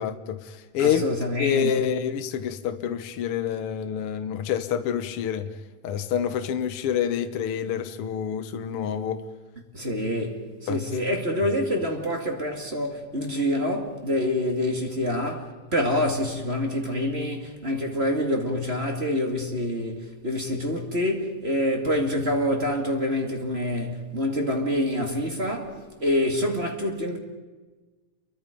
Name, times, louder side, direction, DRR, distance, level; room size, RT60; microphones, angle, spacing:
voice 1, 0.0-1.0 1.4-5.5 5.8-9.2 10.7-10.8, left 9 dB, 60° left, 1.6 m, -27 dB
voice 2, 0.8-1.9 9.7-27.2, left 1 dB, 20° right, 2.3 m, -26 dB
30.0 x 23.0 x 5.3 m
omnidirectional pair, 3.6 m